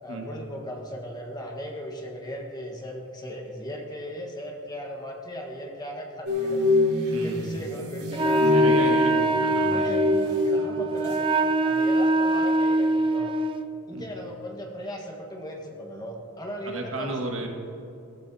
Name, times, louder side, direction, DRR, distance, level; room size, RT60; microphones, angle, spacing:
voice 1, 0.0-6.6 7.1-8.9 9.7-11.2 11.6-13.3 13.9-17.5, equal, 20° left, 0 dB, 1.5 m, -37 dB
sound 1, 6.3-11.4 11.6-12.0, left 3 dB, 85° right, 3.6 m, -25 dB
voice 2, 7.1-7.5 8.4-9.1 9.4-10.1 13.9-14.1 16.7-17.5, right 2 dB, 65° right, 1 dB, 1.9 m, -33 dB
Wind instrument woodwind instrument, 8.1-13.7, right 2 dB, 25° right, 0.5 m, -24 dB
17.0 x 14.5 x 2.9 m, 2.7 s
head